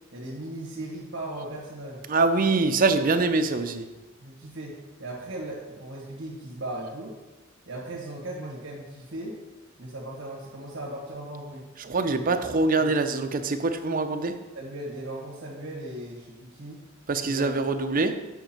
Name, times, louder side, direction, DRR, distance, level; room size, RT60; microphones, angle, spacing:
voice 1, 0.1-2.0 4.2-7.2 7.7-9.4 9.8-11.7 12.1-12.3 14.5-16.8 17.2-17.6, right 1 dB, 60° right, 1.7 m, -37 dB
voice 2, 2.1-3.9 11.8-14.4 17.1-18.2, right 3 dB, 40° right, 0.6 m, -24 dB
8.1 x 5.4 x 4.4 m
head